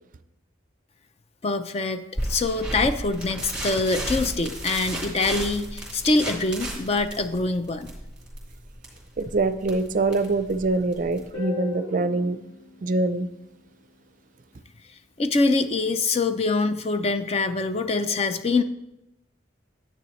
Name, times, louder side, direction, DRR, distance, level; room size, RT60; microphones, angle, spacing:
voice 1, 1.4-7.9 15.2-18.6, left 3 dB, 30° left, 10 dB, 0.4 m, -24 dB
sound 1, 2.2-11.3, right 1 dB, 5° right, 2.5 m, -34 dB
voice 2, 9.2-12.4 12.8-13.3, right 3 dB, 40° right, 11 dB, 0.4 m, -24 dB
Guitar, 11.3-14.3, left 5 dB, 75° left, 1.7 m, -38 dB
9.7 x 8.7 x 3.1 m, 0.88 s
head